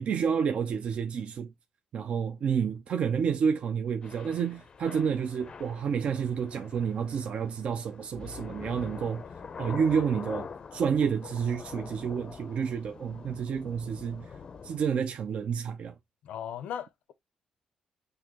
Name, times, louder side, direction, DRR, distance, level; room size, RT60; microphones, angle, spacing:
voice 1, 0.0-1.5 1.9-9.2 9.6-14.3 14.6-16.0, right 7 dB, 55° right, 0.5 m, -29 dB
Thunder / Rain, 4.0-14.8, left 5 dB, 40° left, 0.5 m, -44 dB
voice 2, 16.2-17.1, left 9 dB, 80° left, 0.6 m, -37 dB
6.4 x 2.6 x 2.9 m
cardioid pair, 115°, 2 cm